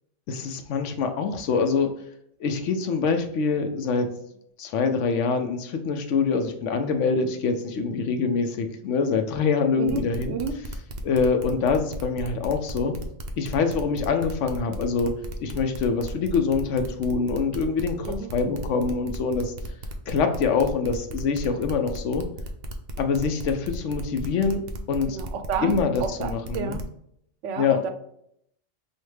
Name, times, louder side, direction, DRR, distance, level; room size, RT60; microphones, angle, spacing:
voice 1, 0.3-1.9 2.4-4.1 4.6-10.4 11.0-12.9 13.4-19.5 20.1-22.2 23.0-24.6 24.9-25.2 25.6-26.8 27.6-27.8, left 5 dB, 75° left, 7 dB, 0.9 m, -25 dB
voice 2, 9.8-10.6 18.1-18.3 25.1-26.8 27.4-27.9, right 6 dB, 75° right, 7 dB, 0.9 m, -31 dB
sound 1, 9.9-26.8, right 1 dB, 55° right, 0.5 m, -36 dB
5.4 x 2.1 x 3.2 m, 0.72 s
omnidirectional pair, 1.3 m